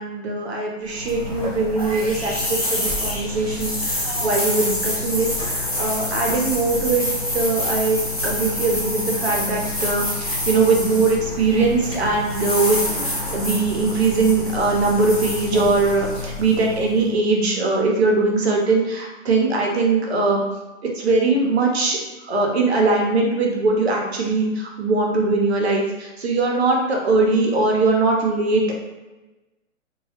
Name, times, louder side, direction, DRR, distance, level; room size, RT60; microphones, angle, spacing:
voice 1, 0.0-7.1 7.3-20.4 20.9-22.0 22.3-28.7, right 3 dB, 55° right, 0 dB, 0.6 m, -21 dB
sound 1, 0.9-17.1, left 1 dB, 30° left, 0.4 m, -27 dB
2.2 x 2.0 x 2.7 m, 1.1 s
hypercardioid pair, 175°, 39 cm